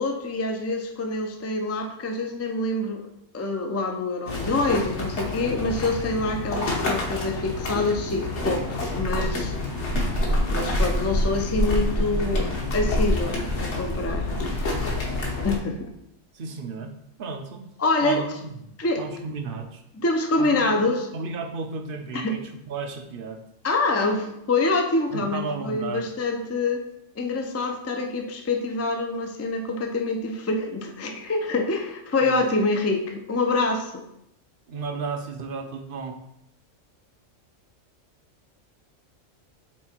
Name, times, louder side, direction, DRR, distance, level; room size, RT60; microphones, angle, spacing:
voice 1, 0.0-3.0 3.3-9.5 10.5-14.4 15.4-15.8 17.8-18.2 18.8-19.0 19.9-21.0 22.1-22.4 23.6-26.8 27.2-34.0, left 2 dB, 20° left, 3 dB, 0.4 m, -26 dB
sound 1, 4.3-15.6, left 1 dB, 60° left, 1.4 m, -27 dB
voice 2, 14.5-14.9 16.3-16.9 17.2-17.6 18.0-18.5 19.0-19.8 20.4-20.8 21.1-23.4 25.1-26.1 32.2-32.5 34.7-36.2, right 4 dB, 50° right, 6 dB, 0.7 m, -33 dB
6.2 x 3.8 x 4.4 m, 0.79 s
omnidirectional pair, 1.4 m